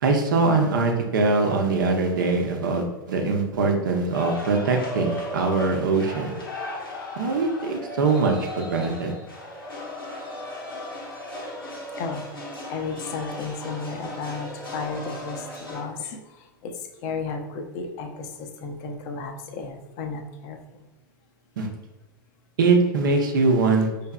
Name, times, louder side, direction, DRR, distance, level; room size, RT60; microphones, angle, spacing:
voice 1, 0.0-6.3 7.2-9.1 21.6-21.7 22.6-23.9, right 3 dB, 60° right, 3 dB, 0.7 m, -22 dB
sound 1, 4.1-15.8, left 1 dB, 85° left, 1.3 m, -36 dB
voice 2, 12.7-20.9, left 4 dB, 45° left, 5 dB, 0.6 m, -34 dB
5.5 x 3.3 x 2.3 m, 1.1 s
figure-of-eight pair, 90°, 12 cm